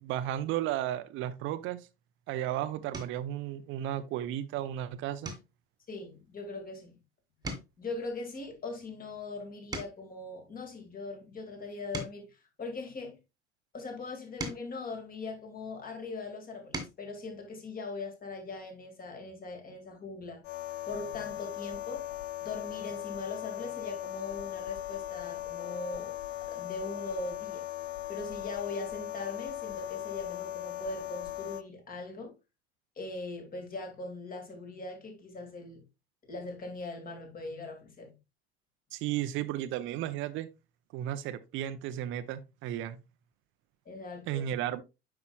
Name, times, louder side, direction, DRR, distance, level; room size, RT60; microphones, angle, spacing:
voice 1, 0.0-1.9 2.3-5.3 38.9-40.5 40.9-43.0 44.3-44.8, right 12 dB, 35° right, 0.7 m, -34 dB
sound 1, 2.1-2.3 2.9-3.3 3.8-4.2 4.5-4.7 5.2-7.0 7.3-10.2 10.8-13.3 14.0-15.8 16.4-17.1 18.5-18.6 18.9-19.1, right 2 dB, 10° right, 1.6 m, -44 dB
voice 2, 5.9-7.0 7.8-13.2 13.7-20.4 20.9-22.1 22.4-26.2 26.5-27.7 28.1-32.3 33.0-35.8 36.2-38.1 43.9-44.4, left 3 dB, 25° left, 2.3 m, -40 dB
sound 2, 20.4-31.6, left 13 dB, 50° left, 0.7 m, -39 dB
9.3 x 5.8 x 2.3 m
figure-of-eight pair, 70°, 33 cm